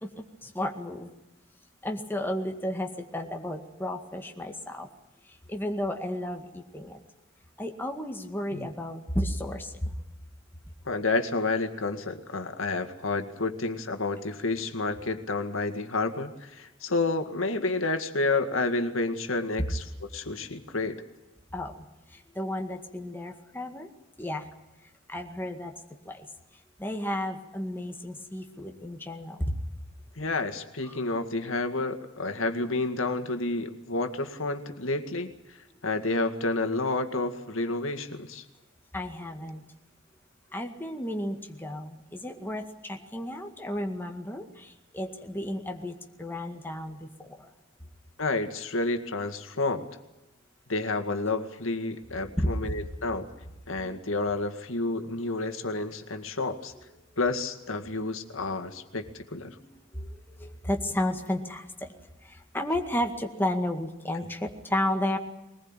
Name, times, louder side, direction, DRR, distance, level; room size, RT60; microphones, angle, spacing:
voice 1, 0.0-1.1 1.8-4.9 5.2-7.0 7.6-10.0 21.5-23.9 24.2-24.5 25.1-25.7 26.0-26.3 26.8-29.6 30.8-31.0 38.9-39.6 40.5-47.5 52.1-52.5 56.7-56.8 59.5-65.2, left 1 dB, 10° left, 3 dB, 2.0 m, -33 dB
voice 2, 10.9-19.8 20.1-21.0 30.2-35.3 35.8-38.5 48.2-49.9 50.7-53.3 53.7-56.7 57.2-59.6, left 3 dB, 80° left, 8 dB, 2.0 m, -30 dB
22.0 x 20.0 x 9.0 m, 0.99 s
head